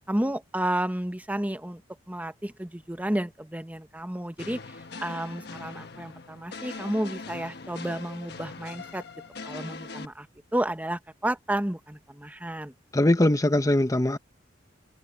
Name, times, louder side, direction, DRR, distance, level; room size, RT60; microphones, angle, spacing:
voice 1, 0.1-1.8 2.1-4.6 5.0-9.0 9.5-10.3 10.5-12.7, right 1 dB, 10° right, 0.9 m, -31 dB
sound 1, 4.4-10.1, left 3 dB, 60° left, 1.3 m, -41 dB
voice 2, 12.9-14.2, left 1 dB, 20° left, 0.8 m, -21 dB
head